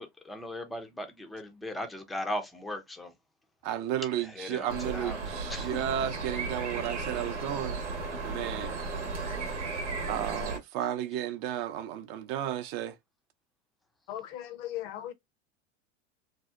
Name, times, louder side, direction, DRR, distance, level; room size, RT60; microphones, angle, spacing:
voice 1, 0.0-3.1 4.2-5.2 5.5-5.8, left 1 dB, ahead, 0.3 m, -38 dB
voice 2, 3.6-7.8 8.2-8.9 10.1-13.0, right 11 dB, 55° right, 0.5 m, -33 dB
sound 1, 4.7-10.6, right 3 dB, 85° right, 0.9 m, -35 dB
voice 3, 14.1-15.1, left 12 dB, 55° left, 0.5 m, -38 dB
2.6 x 2.1 x 2.2 m
hypercardioid pair, 95°, 35 cm